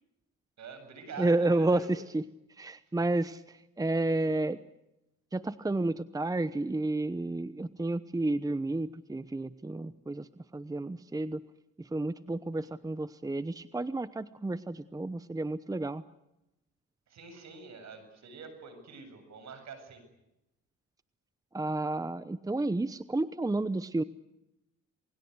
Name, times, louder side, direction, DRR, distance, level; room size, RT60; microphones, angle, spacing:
voice 1, 0.6-1.9 12.5-12.7 17.1-20.0, right 5 dB, 65° right, 9 dB, 7.7 m, -46 dB
voice 2, 1.2-2.2 2.5-4.6 5.3-11.4 11.8-16.0 21.5-24.0, right 2 dB, 10° right, 15 dB, 0.9 m, -31 dB
28.0 x 21.0 x 8.1 m, 0.88 s
cardioid pair, 90°, 30 cm